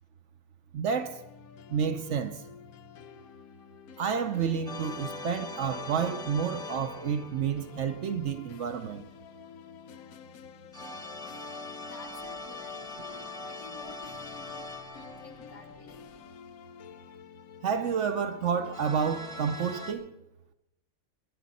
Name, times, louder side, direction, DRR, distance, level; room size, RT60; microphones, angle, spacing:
voice 1, 0.7-1.2 1.7-2.4 4.0-9.0 17.6-20.1, right 7 dB, 65° right, 1.0 m, -30 dB
sound 1, 1.0-19.9, left 8 dB, 80° left, 1.1 m, -50 dB
sound 2, 4.6-8.0 10.7-16.1 18.7-19.9, left 2 dB, 5° left, 1.0 m, -42 dB
voice 2, 11.8-16.7, left 3 dB, 60° left, 2.1 m, -52 dB
20.5 x 10.5 x 4.1 m
omnidirectional pair, 1.5 m